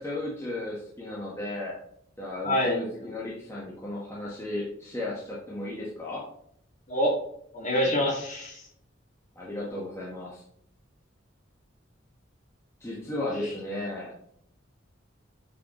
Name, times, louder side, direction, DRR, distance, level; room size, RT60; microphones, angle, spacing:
voice 1, 0.0-1.8 2.2-6.2 9.3-10.4 12.8-14.1, left 1 dB, 15° left, -5 dB, 1.2 m, -35 dB
voice 2, 2.4-2.8 6.9-7.1 7.5-8.6, equal, 40° left, -2 dB, 2.1 m, -25 dB
8.2 x 5.0 x 3.0 m, 0.70 s
head